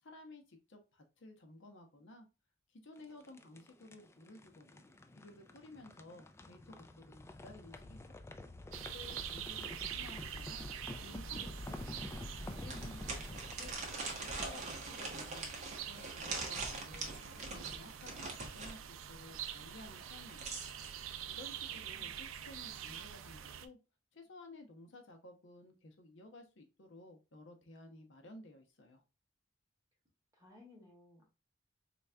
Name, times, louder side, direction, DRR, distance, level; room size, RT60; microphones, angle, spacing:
voice 1, 0.0-2.3 2.7-4.9 5.2-8.2 8.5-10.7 11.0-13.8 14.1-14.6 14.9-18.8 19.1-20.6 20.9-23.8 24.1-29.0, left 2 dB, 65° left, 5 dB, 0.8 m, -55 dB
sound 1, 3.0-15.0, left 1 dB, 15° left, 0.3 m, -48 dB
sound 2, 8.7-23.7, right 9 dB, 75° right, 0.4 m, -46 dB
sound 3, 12.7-18.8 20.0-20.9, right 3 dB, 35° right, 1.0 m, -43 dB
voice 2, 21.7-22.1 30.3-31.2, left 2 dB, 15° right, -2 dB, 1.8 m, -60 dB
4.0 x 3.3 x 2.2 m, 0.29 s
head